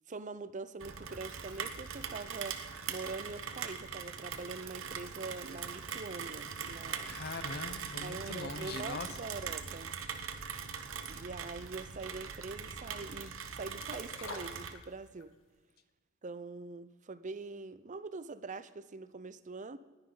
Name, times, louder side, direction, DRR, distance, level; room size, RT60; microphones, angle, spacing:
voice 1, 0.1-7.1 8.0-9.9 11.1-15.3 16.2-19.8, right 3 dB, 40° right, 14 dB, 0.6 m, -44 dB
Rain, 0.8-14.7, right 6 dB, 90° right, 1.0 m, -41 dB
voice 2, 7.1-9.1, left 4 dB, 50° left, 11 dB, 0.7 m, -41 dB
sound 1, 13.8-15.3 15.7-15.8, left 3 dB, 75° left, 1.4 m, -45 dB
19.5 x 9.5 x 3.9 m, 1.3 s
head